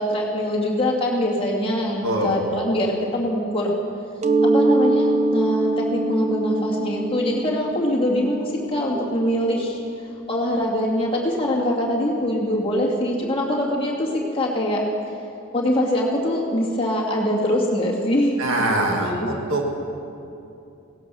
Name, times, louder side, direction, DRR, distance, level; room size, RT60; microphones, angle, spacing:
voice 1, 0.0-3.8 4.4-9.8 10.3-14.1 14.3-14.8 15.5-19.3, left 1 dB, 25° left, -3 dB, 2.3 m, -23 dB
voice 2, 2.0-2.4 18.4-19.6, right 2 dB, 70° right, 1 dB, 2.0 m, -23 dB
Mallet percussion, 4.2-9.8, right 2 dB, 35° right, 0.8 m, -23 dB
17.5 x 11.5 x 6.9 m, 2.7 s
head